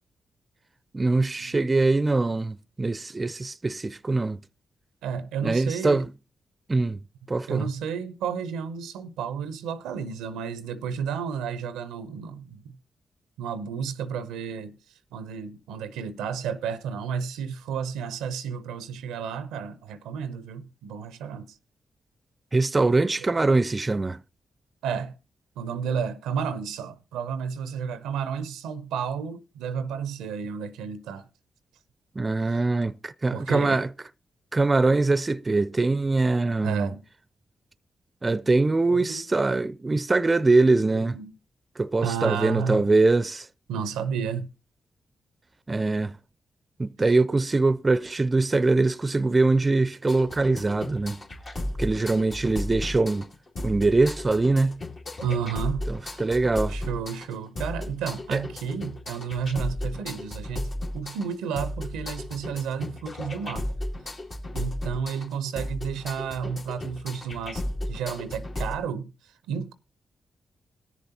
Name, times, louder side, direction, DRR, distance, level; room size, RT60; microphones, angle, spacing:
voice 1, 0.9-4.4 5.4-6.0 6.7-7.0 7.3-7.7 22.5-24.2 32.2-33.9 34.5-36.9 38.2-41.1 41.8-43.5 45.7-46.1 46.8-51.2 51.8-53.3 53.6-54.8 55.9-56.8 58.3-58.4, right 3 dB, 35° right, 0.4 m, -23 dB
voice 2, 5.0-6.1 7.5-12.7 13.4-14.8 15.1-21.6 24.8-25.1 25.6-31.3 32.5-32.6 33.3-33.8 36.6-37.0 38.9-39.2 40.9-41.3 42.0-42.9 43.7-44.5 47.0-47.1 55.2-56.3 56.7-63.7 64.5-69.7, right 7 dB, 85° right, 0.5 m, -32 dB
sound 1, 50.1-68.8, left 1 dB, 60° left, 2.3 m, -34 dB
20.5 x 6.9 x 2.8 m
hypercardioid pair, 40°, 0 cm